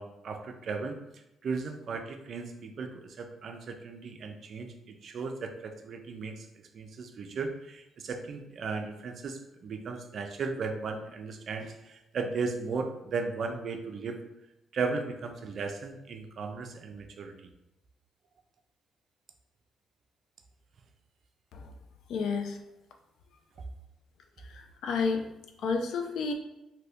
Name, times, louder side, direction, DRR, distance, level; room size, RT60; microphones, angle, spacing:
voice 1, 0.0-6.5 6.7-14.2 14.7-17.5, right 4 dB, 55° right, 5 dB, 0.4 m, -36 dB
voice 2, 22.1-22.6 24.5-25.2 25.6-26.3, left 5 dB, 75° left, 4 dB, 0.4 m, -30 dB
2.7 x 2.6 x 3.4 m, 0.92 s
cardioid pair, 90°, 0 cm